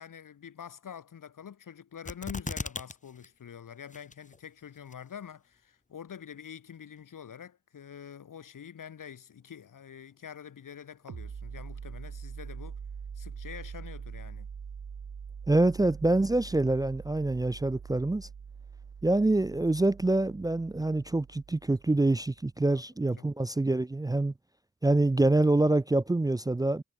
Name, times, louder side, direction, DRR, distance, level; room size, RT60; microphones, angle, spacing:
voice 1, 0.0-12.8 13.1-14.5 22.7-23.3, left 8 dB, 85° left, 4.2 m, -46 dB
sound 1, 2.1-2.9 3.2-3.3 3.9-4.4 4.9-5.0, left 3 dB, 25° left, 1.2 m, -36 dB
sound 2, 11.1-22.4, right 6 dB, 70° right, 3.6 m, -44 dB
voice 2, 15.5-18.3 19.0-24.3 24.8-26.8, right 2 dB, 10° right, 0.4 m, -26 dB
cardioid pair, 40°, 31 cm